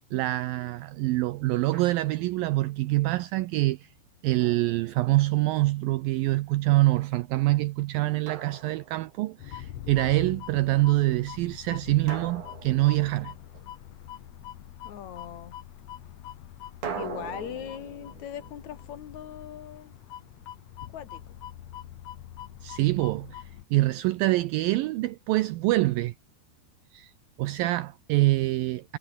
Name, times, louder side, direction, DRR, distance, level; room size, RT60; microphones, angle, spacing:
voice 1, 0.1-3.9 4.2-13.3 22.6-26.1 26.9-27.1 27.4-29.0, right 18 dB, 80° right, 2.1 m, -25 dB
Drum, 1.7-2.4 4.4-5.5 8.3-9.4 12.1-13.7 16.8-19.8, right 6 dB, 50° right, 4.6 m, -42 dB
sound 1, 9.4-23.6, left 11 dB, 75° left, 1.5 m, -44 dB
voice 2, 14.8-15.6 17.0-19.9 20.9-21.4, left 10 dB, 50° left, 2.6 m, -40 dB
omnidirectional pair, 4.8 m